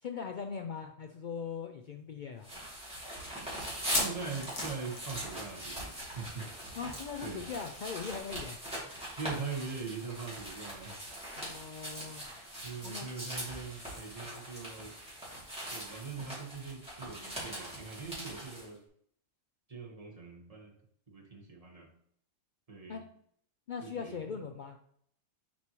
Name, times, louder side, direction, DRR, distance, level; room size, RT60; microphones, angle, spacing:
voice 1, 0.0-2.5 6.8-8.6 11.4-12.3 12.8-13.1 22.9-23.0 23.7-24.8, left 6 dB, 75° left, 5 dB, 0.4 m, -40 dB
sound 1, 1.0-1.1 1.4-1.5 2.1-2.2 3.7-5.8 6.1-6.3 6.6-6.7 8.1-8.2, left 3 dB, 50° left, 1.3 m, -37 dB
sound 2, 2.4-18.7, right 1 dB, 5° right, 2.5 m, -41 dB
voice 2, 3.9-6.5 7.2-7.5 9.2-11.0 12.6-14.9 15.7-18.8 19.7-20.7 21.1-21.9 22.7-23.0 23.8-24.2, right 5 dB, 30° right, -1 dB, 1.3 m, -42 dB
7.2 x 4.5 x 3.0 m, 0.66 s
omnidirectional pair, 1.3 m